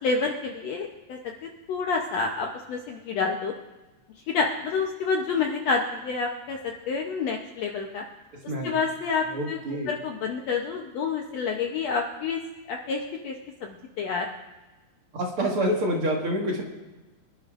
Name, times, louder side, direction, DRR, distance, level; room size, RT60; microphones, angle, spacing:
voice 1, 0.0-3.5 4.3-8.0 8.6-9.6 9.9-12.4 12.7-13.4 13.6-14.3, left 4 dB, 70° left, 1 dB, 1.7 m, -28 dB
voice 2, 9.3-9.9 15.1-16.6, right 1 dB, 45° right, -2 dB, 2.2 m, -27 dB
25.5 x 12.0 x 2.5 m, 1.1 s
omnidirectional pair, 3.9 m